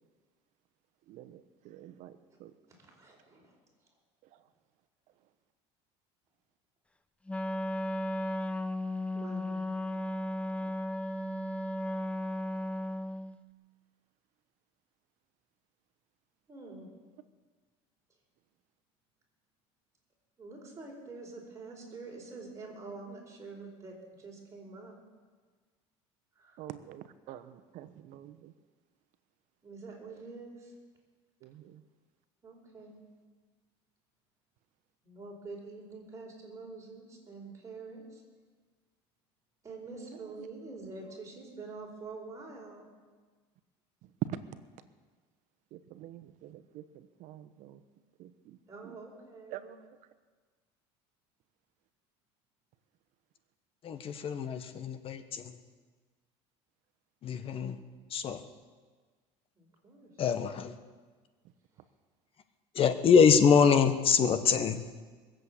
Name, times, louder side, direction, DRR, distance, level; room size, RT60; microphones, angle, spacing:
voice 1, 1.1-2.5 10.6-10.7 26.6-28.5 31.4-31.8 40.1-40.5 40.8-40.9 44.3-44.4 45.7-47.8 48.2-48.6 48.8-49.0 49.5-50.0, right 11 dB, 60° right, 11 dB, 1.1 m, -47 dB
voice 2, 2.7-3.5 9.1-9.7 16.5-16.9 20.4-24.9 26.4-26.6 29.6-30.7 32.4-33.0 35.0-38.2 39.6-42.9 48.7-49.6 59.6-60.1, right 3 dB, 20° right, -1 dB, 4.8 m, -46 dB
Wind instrument woodwind instrument, 7.3-13.4, left 1 dB, 10° left, 0.6 m, -35 dB
voice 3, 53.8-55.5 57.2-57.8 58.1-58.4 60.2-60.7 62.7-64.8, left 6 dB, 40° left, 9 dB, 1.3 m, -24 dB
21.5 x 7.8 x 8.5 m, 1.4 s
supercardioid pair, 120°, 14 cm